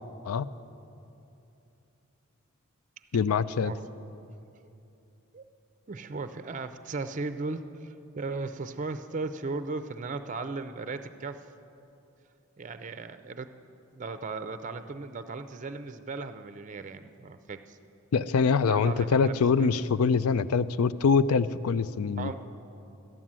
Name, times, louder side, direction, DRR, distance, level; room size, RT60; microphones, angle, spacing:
voice 1, 3.1-3.7 18.1-22.3, left 5 dB, 90° left, 15 dB, 0.4 m, -24 dB
voice 2, 5.9-11.5 12.6-13.5 13.9-17.8 18.6-19.7 22.2-22.3, right 3 dB, 35° right, 10 dB, 0.5 m, -36 dB
12.5 x 11.0 x 7.4 m, 2.8 s
head